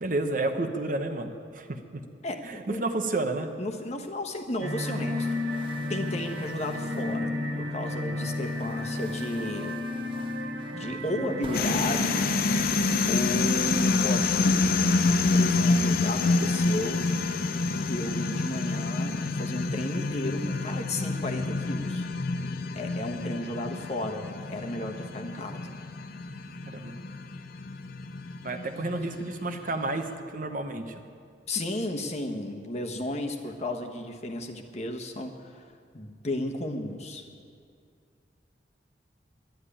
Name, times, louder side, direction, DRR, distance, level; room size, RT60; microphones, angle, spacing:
voice 1, 0.0-2.0 2.4-3.5 26.6-26.9 28.4-30.1 30.3-31.0, right 2 dB, 45° right, 6 dB, 0.9 m, -31 dB
voice 2, 2.2-2.8 3.6-5.6 5.9-9.8 10.7-12.2 13.1-14.9 15.3-17.1 17.7-22.1 22.7-25.6 31.5-35.7 35.9-37.3, left 1 dB, 35° left, 3 dB, 1.1 m, -34 dB
sound 1, 4.6-7.2 7.8-12.7, right 2 dB, 30° right, 1.1 m, -47 dB
sound 2, 4.6-15.1, left 2 dB, 80° right, 1.5 m, -33 dB
sound 3, 11.5-30.0, left 3 dB, 50° left, 0.6 m, -27 dB
11.5 x 10.5 x 10.0 m, 2.2 s
head